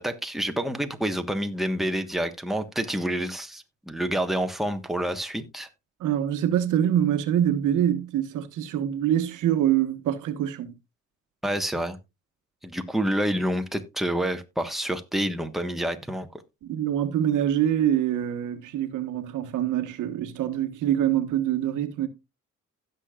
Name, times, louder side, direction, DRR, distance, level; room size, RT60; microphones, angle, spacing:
voice 1, 0.0-5.7 11.4-12.0 12.6-16.3, right 1 dB, ahead, 1.3 m, -28 dB
voice 2, 6.0-10.7 16.6-22.1, right 10 dB, 85° right, 1.3 m, -25 dB
16.5 x 6.8 x 2.4 m
cardioid pair, 90°, 30 cm